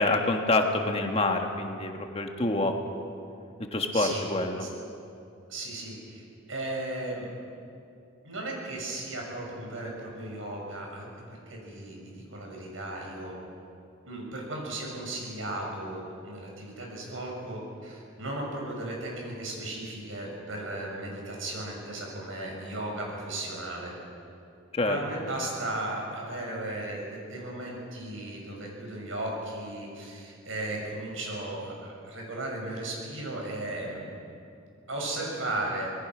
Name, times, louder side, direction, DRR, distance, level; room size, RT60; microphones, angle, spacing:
voice 1, 0.0-2.7 3.7-4.7 24.7-25.0, left 2 dB, 30° left, 3 dB, 1.6 m, -26 dB
voice 2, 3.9-4.2 4.6-4.7 5.5-7.3 8.2-13.3 14.0-23.9 24.8-34.1 34.9-35.9, right 1 dB, 80° right, -1 dB, 6.8 m, -36 dB
25.5 x 20.5 x 6.2 m, 2.6 s
head